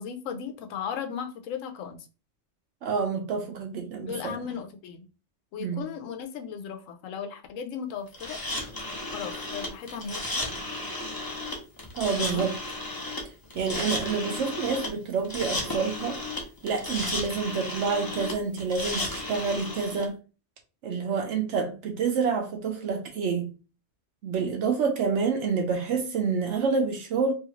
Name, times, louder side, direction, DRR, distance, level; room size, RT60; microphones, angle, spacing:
voice 1, 0.0-2.1 4.1-5.1 5.5-8.4 9.1-10.6 12.2-12.4, left 7 dB, 85° left, 1.0 m, -36 dB
voice 2, 2.8-4.4 5.6-5.9 11.9-12.6 13.5-16.2 16.6-20.2 20.8-23.5 24.2-27.3, right 5 dB, 70° right, 0.9 m, -28 dB
sound 1, 8.1-20.0, left 2 dB, 25° left, 0.5 m, -34 dB
2.7 x 2.4 x 2.9 m
omnidirectional pair, 1.3 m